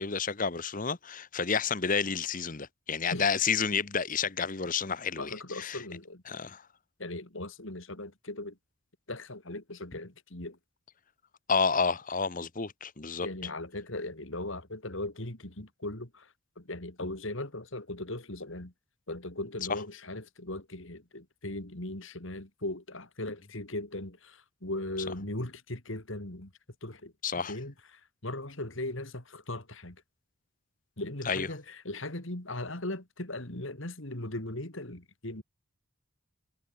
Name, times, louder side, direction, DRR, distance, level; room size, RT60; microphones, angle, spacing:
voice 1, 0.0-5.8 6.3-6.6 11.5-13.3 19.7-19.8 27.2-27.6 31.2-31.5, left 5 dB, 35° left, 1.1 m, -30 dB
voice 2, 5.2-6.2 7.0-8.5 9.1-10.6 13.2-16.2 16.6-18.7 19.1-26.5 26.8-27.1 27.5-27.7 28.2-30.0 31.0-35.4, left 1 dB, 60° left, 2.9 m, -38 dB
head